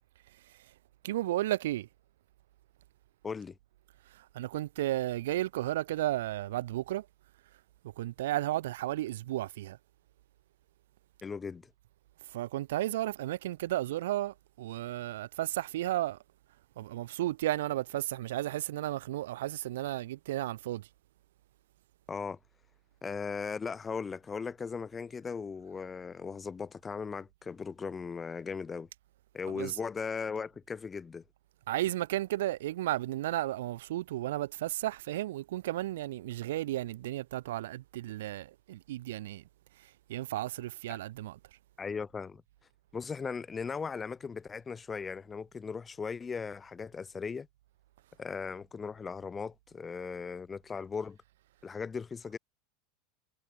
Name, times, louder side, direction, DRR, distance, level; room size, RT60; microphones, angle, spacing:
voice 1, 1.0-1.9 4.1-7.0 8.0-9.8 12.3-16.2 16.8-20.9 29.5-29.8 31.7-39.4 40.1-41.4, right 15 dB, 85° right, 1.2 m, -33 dB
voice 2, 3.2-3.6 11.2-11.6 22.1-22.4 23.0-28.9 29.3-31.2 40.9-41.0 41.8-42.4 42.9-47.5 48.2-51.2 51.6-52.4, left 5 dB, 10° left, 1.5 m, -38 dB
supercardioid pair, 175°, 0 cm